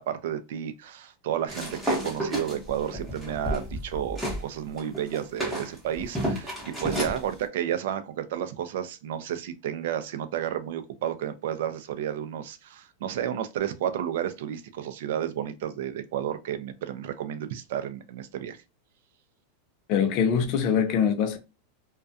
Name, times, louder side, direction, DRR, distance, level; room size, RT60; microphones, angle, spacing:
voice 1, 0.0-18.6, right 10 dB, 70° right, 0.4 m, -32 dB
sound 1, 1.5-4.4 4.8-7.2, right 1 dB, 5° right, 0.9 m, -31 dB
voice 2, 19.9-21.4, left 7 dB, 40° left, 0.5 m, -23 dB
2.3 x 2.2 x 2.6 m
supercardioid pair, 155°, 0 cm